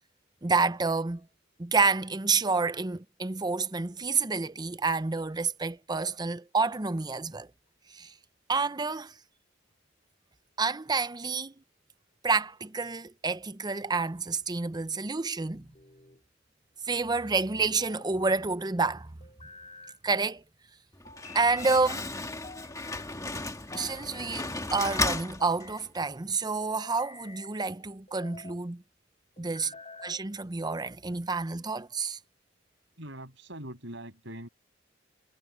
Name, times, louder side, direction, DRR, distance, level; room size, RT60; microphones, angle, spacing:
voice 1, 0.4-1.2 1.6-7.5 7.9-8.1 8.5-9.1 10.6-11.5 12.2-15.7 16.9-19.1 20.0-20.4 21.3-22.1 23.7-28.8 29.4-29.7 30.0-32.2, right 4 dB, 20° right, 0.7 m, -29 dB
sound 1, 15.5-16.2 17.6-18.4 19.2-20.0 21.1-21.8 22.4-23.1 23.7-24.6 25.2-25.9 26.6-27.6 28.1-28.6 29.4-30.2, left 4 dB, 35° left, 3.7 m, -50 dB
Slam, 20.9-26.0, left 2 dB, 20° left, 1.8 m, -34 dB
voice 2, 33.0-34.5, right 1 dB, 70° right, 7.6 m, -42 dB
head